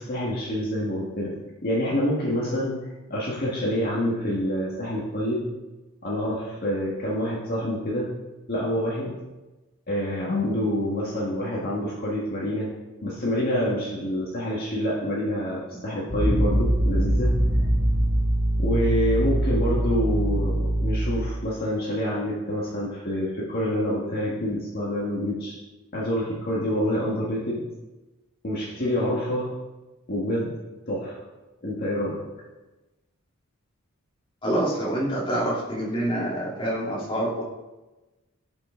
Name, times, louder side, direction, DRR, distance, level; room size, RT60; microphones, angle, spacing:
voice 1, 0.0-1.3 1.6-2.8 3.1-5.5 6.0-8.1 8.5-9.1 9.9-12.7 13.0-17.3 18.6-25.5 25.9-27.6 28.4-29.5 30.1-30.5 30.9-31.2 31.6-32.2, equal, 45° left, -5 dB, 1.7 m, -27 dB
sound 1, 16.1-21.4, right 1 dB, 60° right, 2.7 m, -23 dB
voice 2, 34.4-37.4, right 1 dB, 25° left, -5 dB, 2.5 m, -26 dB
16.0 x 5.7 x 3.8 m, 1.1 s
head